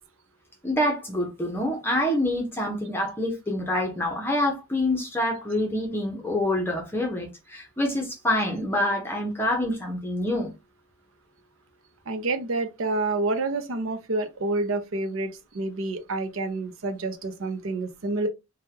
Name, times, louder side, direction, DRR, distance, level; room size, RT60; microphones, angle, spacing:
voice 1, 0.6-10.5, left 1 dB, 10° left, 0.7 m, -26 dB
voice 2, 12.1-18.3, right 2 dB, 90° right, 0.7 m, -28 dB
3.5 x 2.2 x 2.8 m
head